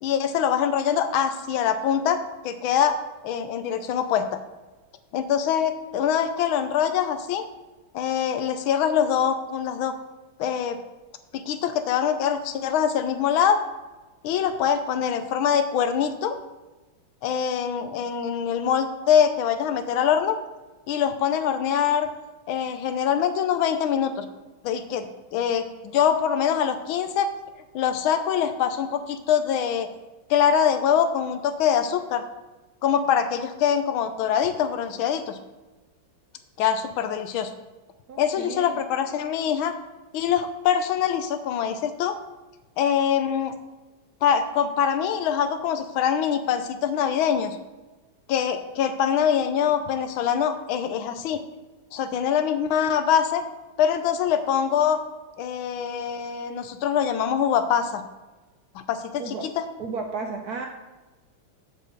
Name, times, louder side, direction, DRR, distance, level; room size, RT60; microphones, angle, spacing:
voice 1, 0.0-4.4 5.1-7.4 7.9-9.9 10.4-10.8 11.3-13.6 14.2-16.4 17.2-20.4 20.9-22.1 22.5-24.2 24.6-27.3 27.7-29.9 30.3-32.2 32.8-35.4 36.6-37.5 38.2-39.7 40.1-42.2 42.8-43.5 44.2-47.6 48.3-51.4 51.9-53.4 53.8-55.0 55.4-58.0 58.9-59.7, left 8 dB, 75° left, 9 dB, 1.4 m, -24 dB
voice 2, 38.1-38.8 59.2-59.5 59.8-60.7, right 4 dB, 65° right, 3 dB, 1.0 m, -33 dB
7.7 x 5.0 x 6.4 m, 1.1 s
omnidirectional pair, 2.4 m